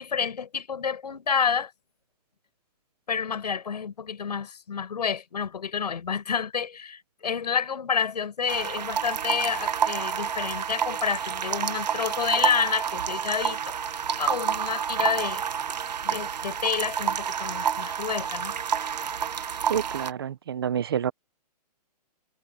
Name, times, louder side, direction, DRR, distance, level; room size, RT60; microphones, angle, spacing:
voice 1, 0.0-1.7 3.1-15.4 16.0-18.5, left 6 dB, 75° left, 7.3 m, -29 dB
sound 1, 8.5-20.1, right 8 dB, 80° right, 1.3 m, -29 dB
voice 2, 19.7-21.1, right 8 dB, 35° right, 0.7 m, -28 dB
hypercardioid pair, 180°, 21 cm